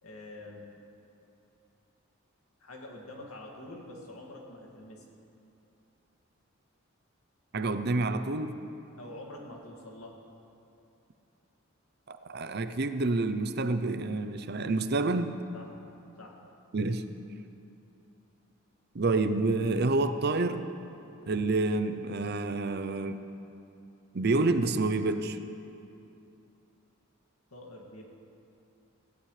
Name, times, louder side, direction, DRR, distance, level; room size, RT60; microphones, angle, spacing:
voice 1, 0.0-0.8 2.6-5.0 9.0-10.2 15.5-15.7 16.2-16.4 27.5-28.0, left 1 dB, 85° left, -1 dB, 2.2 m, -46 dB
voice 2, 7.5-8.6 12.1-15.4 16.7-17.1 18.9-20.7 21.3-23.3 24.1-25.4, right 2 dB, 50° right, 10 dB, 0.6 m, -28 dB
19.0 x 16.0 x 3.3 m, 2.7 s
head